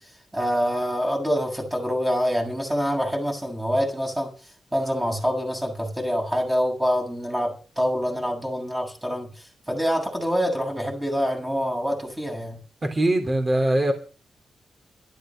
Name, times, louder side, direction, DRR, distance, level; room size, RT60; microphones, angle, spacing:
voice 1, 0.3-4.3 4.7-12.6, equal, 10° right, 7.3 m, -26 dB
voice 2, 12.9-13.9, right 1 dB, 25° right, 3.4 m, -21 dB
13.0 x 12.0 x 6.6 m
wide cardioid pair, 115°, 0 cm